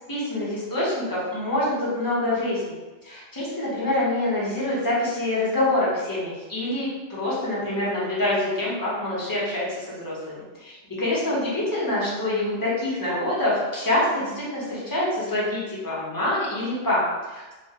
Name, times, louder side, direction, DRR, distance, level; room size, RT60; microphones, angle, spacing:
voice 1, 0.1-2.8 3.0-17.6, left 1 dB, 20° left, -8 dB, 0.7 m, -26 dB
2.3 x 2.1 x 2.7 m, 1.2 s
omnidirectional pair, 1.2 m